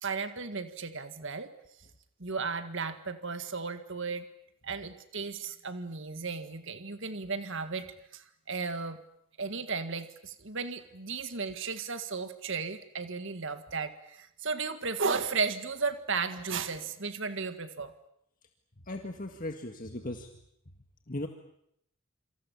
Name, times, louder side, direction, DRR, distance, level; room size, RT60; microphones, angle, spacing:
voice 1, 0.0-1.5 2.2-4.2 4.6-7.9 8.1-9.0 9.4-17.9, right 4 dB, 55° right, 9 dB, 1.8 m, -34 dB
voice 2, 18.8-20.3 21.1-21.3, left 1 dB, 40° left, 4 dB, 1.9 m, -37 dB
27.5 x 26.0 x 7.2 m, 0.74 s
head